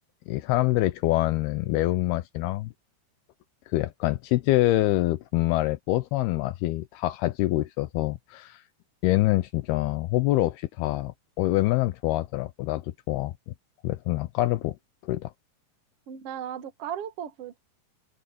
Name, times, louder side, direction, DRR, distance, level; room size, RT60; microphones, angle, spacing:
voice 1, 0.3-2.7 3.7-8.6 9.0-13.3 13.8-14.8 15.0-15.3, left 17 dB, 85° left, 2.3 m, -25 dB
voice 2, 16.1-17.6, right 9 dB, 80° right, 1.3 m, -36 dB
open air
omnidirectional pair, 5.2 m